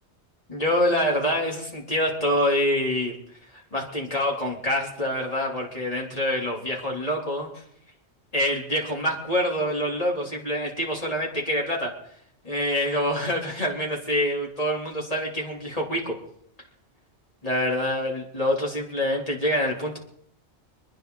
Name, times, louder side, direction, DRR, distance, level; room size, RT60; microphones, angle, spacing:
voice 1, 0.5-3.1 3.7-7.6 8.3-11.9 12.4-16.2 17.4-20.0, left 1 dB, 30° left, -2 dB, 3.6 m, -26 dB
26.5 x 10.0 x 4.1 m, 0.68 s
omnidirectional pair, 1.2 m